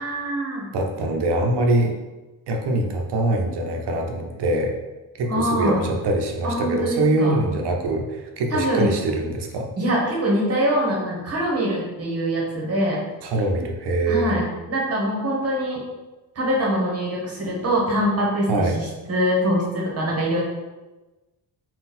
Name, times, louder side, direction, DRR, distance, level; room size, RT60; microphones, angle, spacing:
voice 1, 0.0-0.7 5.3-5.8 6.4-7.4 8.5-8.9 9.8-13.0 14.1-15.8 16.3-20.4, equal, 35° right, -3 dB, 1.1 m, -23 dB
voice 2, 0.7-1.9 2.5-4.7 5.1-9.7 13.2-14.4 18.5-18.8, right 2 dB, 80° right, 2 dB, 0.7 m, -23 dB
3.8 x 2.4 x 4.1 m, 1.1 s
wide cardioid pair, 160°, 40 cm